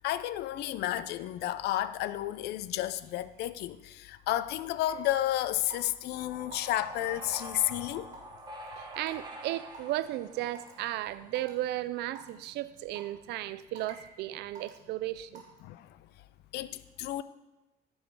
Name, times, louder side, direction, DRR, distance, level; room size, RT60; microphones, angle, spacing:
voice 1, 0.0-8.1 15.6-15.9 16.5-17.2, left 13 dB, 75° left, 0.5 m, -32 dB
Raindrop / Water tap faucet / Drip, 4.9-5.1 5.7-6.0 6.5-6.7 7.3-7.5 8.1-8.4 8.9-9.1 9.7-9.8 10.5-10.7 11.4-11.5 12.2-12.3 13.0-13.2 13.8-14.1 14.6-14.8 15.4-15.6, right 4 dB, 45° right, 3.4 m, -47 dB
sound 1, 6.1-11.4, right 1 dB, 25° right, 1.3 m, -46 dB
voice 2, 8.8-15.4, right 15 dB, 85° right, 0.5 m, -35 dB
13.5 x 5.5 x 4.7 m
cardioid pair, 110°, 17 cm